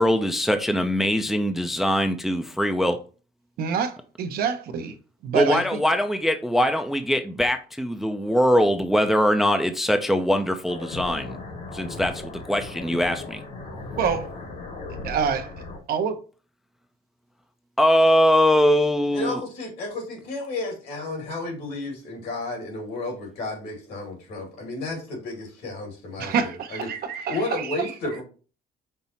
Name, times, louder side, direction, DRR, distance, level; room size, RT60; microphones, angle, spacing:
voice 1, 0.0-3.0 5.3-11.4 11.7-13.4 17.8-19.4, equal, ahead, 0.4 m, -22 dB
voice 2, 3.6-5.0 5.2-5.8 14.0-14.3 15.0-15.5 15.9-16.2 26.2-27.9, right 6 dB, 65° right, 0.7 m, -26 dB
sound 1, 10.7-15.8, left 3 dB, 50° left, 1.3 m, -37 dB
voice 3, 19.1-26.9 27.3-28.2, left 2 dB, 70° left, 2.2 m, -32 dB
5.4 x 2.0 x 4.1 m
cardioid pair, 110°, 17 cm